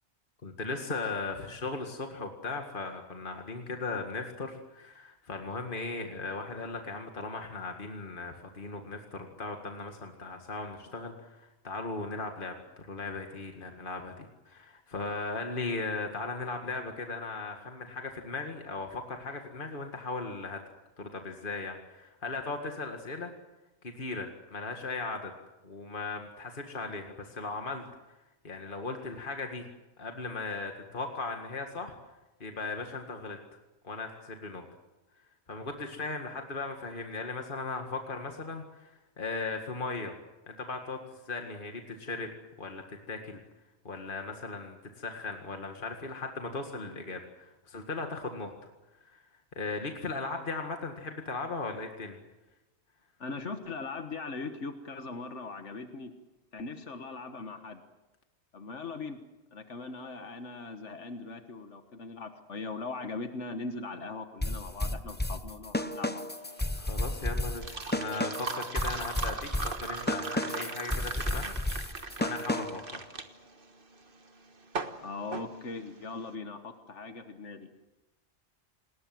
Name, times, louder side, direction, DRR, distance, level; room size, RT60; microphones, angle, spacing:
voice 1, 0.4-20.6 21.0-23.3 23.8-25.3 25.6-27.8 28.4-29.6 30.0-31.9 32.4-33.4 33.8-34.7 35.5-40.1 40.5-41.0 41.2-42.3 42.6-43.4 43.8-48.5 49.1-49.2 49.6-52.2 66.8-71.5 71.8-73.1, left 3 dB, 50° left, 4 dB, 2.1 m, -37 dB
voice 2, 53.2-56.1 56.5-57.8 58.5-59.2 59.5-66.4 75.0-77.7, left 3 dB, 85° left, 7 dB, 1.8 m, -40 dB
sound 1, 64.4-72.9, left 1 dB, 10° left, 0.8 m, -33 dB
sound 2, 66.4-76.2, right 4 dB, 50° right, 1.7 m, -39 dB
28.5 x 20.0 x 7.7 m, 1.1 s
omnidirectional pair, 1.2 m